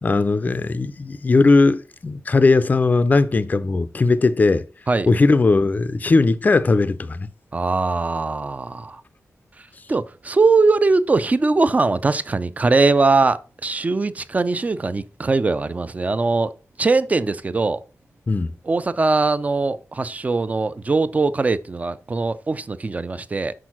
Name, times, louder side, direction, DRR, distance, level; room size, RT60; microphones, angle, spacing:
voice 1, 0.0-4.6 5.1-7.3 18.3-18.5, left 3 dB, 30° left, 0.4 m, -18 dB
voice 2, 7.5-9.0 9.9-16.5 16.8-17.8 18.6-23.5, right 3 dB, 30° right, 0.5 m, -21 dB
6.2 x 4.6 x 6.0 m
wide cardioid pair, 135°, 5 cm